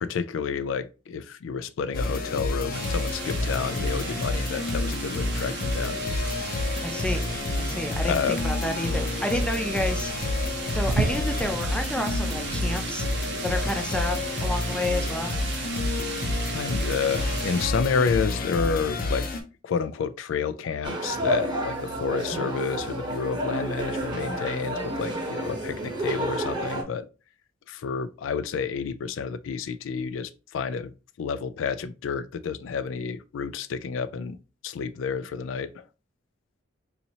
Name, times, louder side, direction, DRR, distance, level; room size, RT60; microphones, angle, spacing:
voice 1, 0.0-6.0 8.0-8.4 16.5-19.3 19.6-27.1 27.7-30.9 31.2-34.4 34.6-35.8, left 6 dB, 90° left, 0.3 m, -30 dB
sound 1, 1.9-19.4, left 2 dB, 50° left, 0.6 m, -29 dB
sound 2, 2.7-17.7, right 5 dB, 60° right, 0.5 m, -35 dB
voice 2, 6.8-7.3 7.6-10.1 10.7-13.1 13.4-15.4, left 1 dB, 5° left, 0.5 m, -30 dB
sound 3, 20.8-26.8, right 1 dB, 25° right, 0.9 m, -30 dB
4.1 x 2.7 x 2.8 m
head